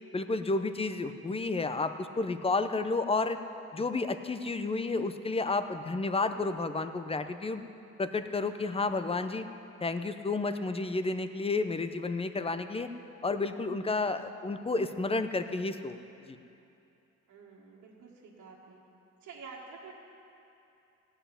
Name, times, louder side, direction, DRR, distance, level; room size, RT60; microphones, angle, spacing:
voice 1, 0.1-3.4 3.7-7.6 8.0-9.4 9.8-12.9 13.2-16.0 16.3-16.4, left 3 dB, 20° left, 10 dB, 0.7 m, -31 dB
voice 2, 17.3-18.8 19.2-19.9, right 5 dB, 70° right, -5 dB, 1.9 m, -49 dB
16.0 x 5.7 x 9.9 m, 2.8 s
cardioid pair, 90°, 30 cm